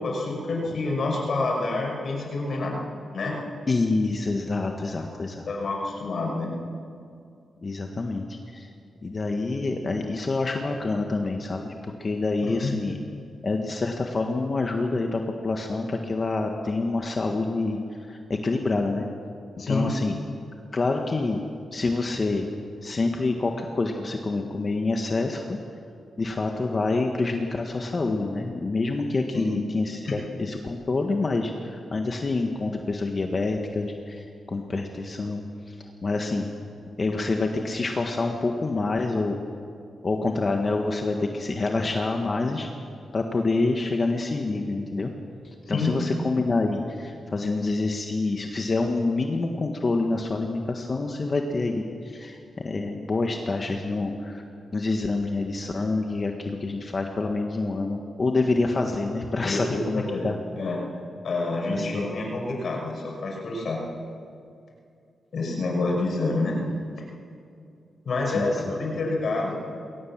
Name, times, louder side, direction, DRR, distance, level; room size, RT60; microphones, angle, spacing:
voice 1, 0.0-2.8 3.1-3.4 5.0-5.1 5.5-6.5 12.4-12.7 19.6-19.9 29.3-29.5 30.1-30.2 45.7-45.9 59.4-60.3 60.6-60.8 61.2-63.8 65.3-66.6 68.1-69.6, left 3 dB, 60° left, -1 dB, 5.9 m, -27 dB
voice 2, 3.7-5.5 7.6-8.7 9.0-13.0 13.4-17.8 18.1-19.1 19.7-20.2 20.7-21.4 21.7-22.5 22.8-25.6 26.2-35.7 36.0-36.4 37.0-39.4 40.0-42.7 43.1-45.1 45.4-52.4 52.6-54.4 54.7-60.4 61.7-61.9 68.3-68.6, left 3 dB, 35° left, 3 dB, 1.5 m, -27 dB
21.0 x 18.5 x 7.4 m, 2.5 s
cardioid pair, 100°, 0 cm